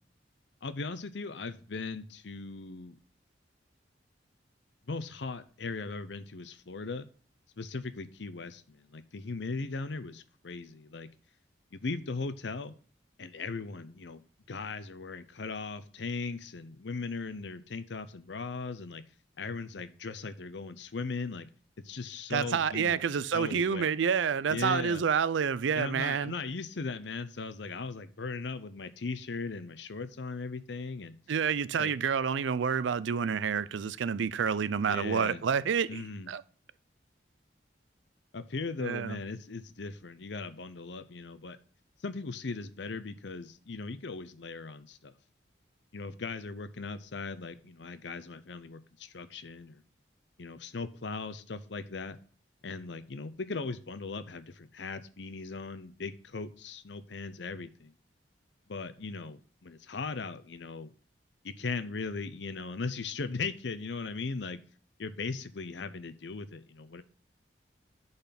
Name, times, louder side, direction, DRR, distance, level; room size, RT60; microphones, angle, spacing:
voice 1, 0.6-3.0 4.9-7.1 7.6-11.1 11.7-12.7 13.2-14.2 14.5-19.0 19.4-21.5 21.8-23.0 23.3-23.9 24.5-25.0 25.7-31.2 31.8-31.9 34.9-35.4 35.9-36.3 38.3-41.6 42.0-45.1 45.9-49.8 50.4-52.2 52.6-57.9 58.7-60.9 61.4-64.6 65.0-67.0, left 4 dB, 75° left, 0.7 m, -38 dB
voice 2, 22.3-26.3 31.3-36.0 36.3-36.4 38.8-39.2, right 6 dB, 85° right, 0.4 m, -28 dB
10.5 x 4.1 x 5.8 m
head